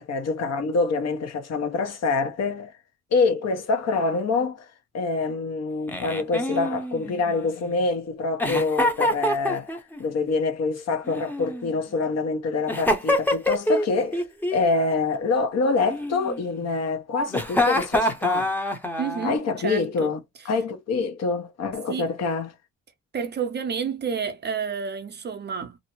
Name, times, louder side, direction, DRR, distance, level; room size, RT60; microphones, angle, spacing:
voice 1, 0.0-2.7 3.1-4.7 4.9-18.5 19.2-20.2 20.4-22.5, left 4 dB, 60° left, 0.8 m, -26 dB
Giggle, 5.9-7.7 8.4-10.0 11.0-12.0 12.7-13.9 14.1-14.7 15.9-16.6 17.3-19.4, left 1 dB, 5° left, 0.6 m, -26 dB
voice 2, 19.0-20.1 21.9-22.1 23.1-25.8, right 6 dB, 35° right, 0.5 m, -30 dB
2.6 x 2.0 x 2.9 m
cardioid pair, 90°, 30 cm